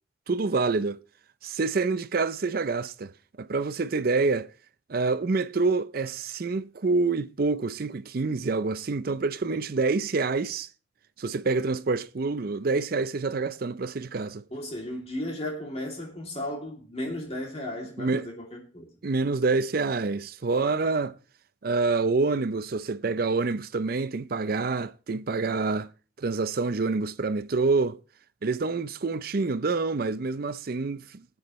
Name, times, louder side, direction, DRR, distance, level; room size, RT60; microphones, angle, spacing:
voice 1, 0.3-1.0 1.4-3.1 3.4-4.5 4.9-10.7 11.2-14.4 18.0-18.3 19.0-21.1 21.6-25.9 26.2-28.0 28.4-31.3, right 3 dB, 50° right, 0.5 m, -27 dB
voice 2, 14.5-18.9, left 1 dB, 30° left, 2.7 m, -35 dB
20.5 x 8.8 x 3.1 m
head